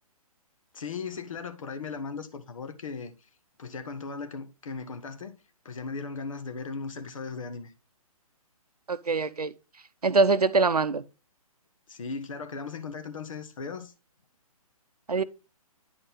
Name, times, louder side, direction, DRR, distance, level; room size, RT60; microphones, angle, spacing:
voice 1, 0.7-3.1 3.6-5.4 5.6-7.7 11.9-13.9, left 4 dB, 60° left, 1.3 m, -37 dB
voice 2, 8.9-9.5 10.0-11.0 15.1-15.2, right 4 dB, 85° right, 0.6 m, -23 dB
10.0 x 4.0 x 3.8 m
figure-of-eight pair, 130°, 19 cm